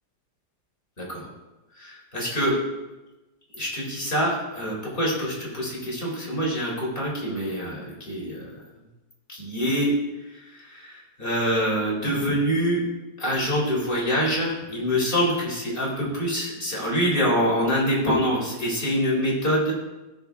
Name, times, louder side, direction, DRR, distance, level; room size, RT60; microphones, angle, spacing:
voice 1, 1.8-2.6 3.5-8.5 9.3-9.9 10.3-12.8 13.2-19.7, equal, 35° left, -4 dB, 3.7 m, -25 dB
17.0 x 6.7 x 3.6 m, 1.1 s
omnidirectional pair, 1.7 m